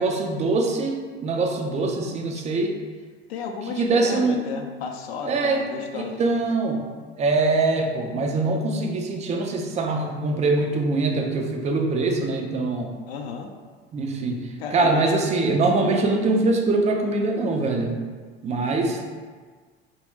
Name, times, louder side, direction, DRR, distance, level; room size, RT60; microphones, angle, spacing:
voice 1, 0.0-2.7 3.7-4.5 5.2-5.6 5.9-6.8 7.2-12.9 13.9-18.0 18.4-19.1, right 3 dB, 20° right, 2 dB, 0.4 m, -23 dB
voice 2, 3.3-6.5 13.1-13.5 14.6-15.1 15.9-16.2 18.8-18.9, left 6 dB, 75° left, 4 dB, 0.5 m, -34 dB
2.7 x 2.0 x 3.2 m, 1.5 s
hypercardioid pair, 80°, 32 cm